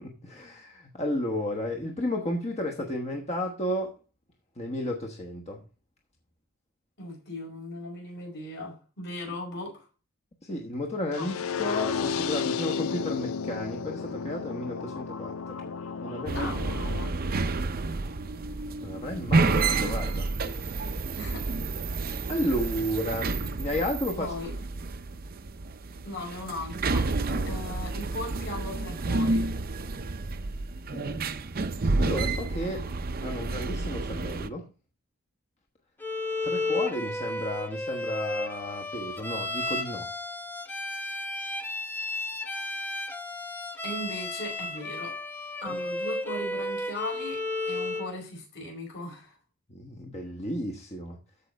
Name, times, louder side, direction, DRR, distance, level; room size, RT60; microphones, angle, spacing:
voice 1, 0.0-3.9 4.6-5.6 10.4-15.6 16.0-16.5 18.8-20.3 22.3-24.3 27.3-27.5 30.9-31.3 32.0-32.9 33.2-34.6 36.4-40.1 45.7-45.8 49.7-51.2, left 1 dB, 30° left, 2 dB, 1.1 m, -33 dB
voice 2, 7.0-9.9 11.2-11.3 16.3-16.6 21.2-21.6 24.2-24.5 26.0-27.1 27.5-29.6 43.8-45.2 45.6-49.3, left 1 dB, 55° left, 0 dB, 5.5 m, -38 dB
sound 1, 11.1-17.1, left 6 dB, 70° left, 0.5 m, -32 dB
sound 2, 16.3-34.5, right 3 dB, 45° right, 0.6 m, -30 dB
Bowed string instrument, 36.0-48.1, left 2 dB, 10° left, 0.8 m, -33 dB
14.0 x 5.2 x 3.4 m, 0.33 s
head